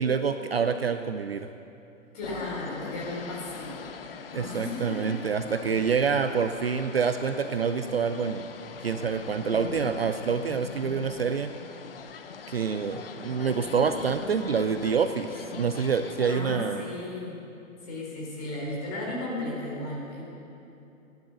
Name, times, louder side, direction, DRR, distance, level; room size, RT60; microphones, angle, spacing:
voice 1, 0.0-1.5 4.3-8.4 8.8-11.5 12.5-16.8, right 6 dB, 45° right, 9 dB, 0.5 m, -27 dB
voice 2, 2.1-3.8 4.3-5.0 16.3-17.4 17.8-20.2, left 1 dB, 30° left, -4 dB, 3.8 m, -35 dB
sound 1, 2.2-16.4, left 6 dB, 45° left, 0.7 m, -41 dB
16.0 x 10.5 x 6.6 m, 2.8 s
hypercardioid pair, 165°, 41 cm